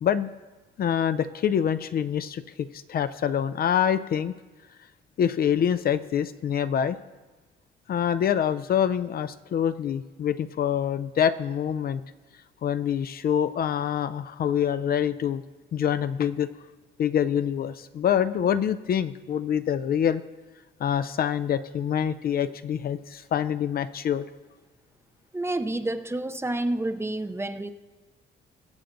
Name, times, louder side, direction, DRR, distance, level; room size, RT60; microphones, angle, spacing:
voice 1, 0.8-4.3 5.2-7.0 7.9-12.0 12.6-15.4 15.7-16.5 17.0-20.2 20.8-24.3, left 9 dB, 50° left, 12 dB, 0.4 m, -25 dB
voice 2, 25.3-27.7, right 1 dB, 10° right, 11 dB, 0.5 m, -29 dB
22.0 x 7.5 x 2.6 m, 1.3 s
cardioid pair, 90°, 20 cm